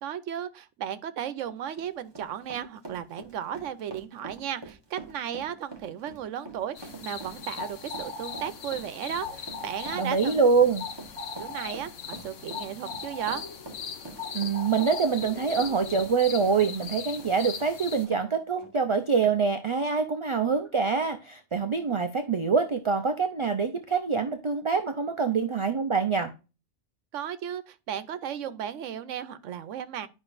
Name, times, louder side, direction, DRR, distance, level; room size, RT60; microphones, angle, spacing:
voice 1, 0.0-10.4 11.4-13.4 27.1-30.1, right 9 dB, 85° right, 1.0 m, -35 dB
Run, 1.6-18.2 18.6-18.7 19.2-19.4, right 3 dB, 20° right, 1.1 m, -45 dB
sound 1, 6.8-18.1, left 6 dB, 80° left, 1.1 m, -40 dB
sound 2, 7.4-16.2, left 3 dB, 5° left, 4.4 m, -41 dB
voice 2, 9.9-10.8 14.3-26.3, right 5 dB, 50° right, 0.3 m, -25 dB
10.5 x 5.3 x 2.5 m
omnidirectional pair, 1.2 m